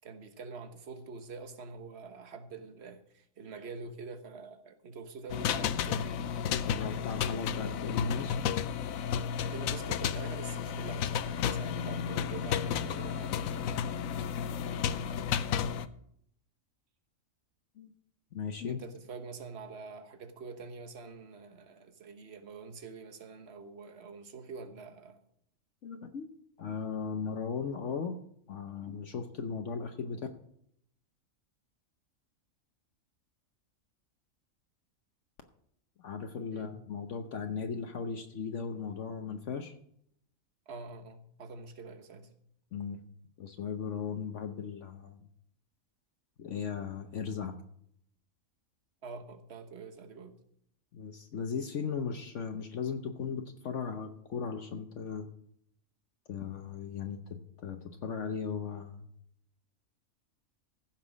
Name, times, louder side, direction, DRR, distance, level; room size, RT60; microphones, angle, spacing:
voice 1, 0.0-6.1 9.5-13.7 18.7-25.2 36.5-36.8 40.7-42.3 49.0-50.4, right 4 dB, 50° right, 1.4 m, -46 dB
sound 1, 5.3-15.9, left 8 dB, 90° left, 1.0 m, -32 dB
voice 2, 6.7-8.3 17.8-17.9 18.3-18.8 25.8-26.3 26.6-28.1 28.5-30.2 36.0-39.8 42.7-43.0 43.4-45.2 46.4-47.6 50.9-55.3 56.3-57.2 57.6-59.1, left 6 dB, 65° left, 1.1 m, -37 dB
15.0 x 6.0 x 6.2 m
omnidirectional pair, 1.4 m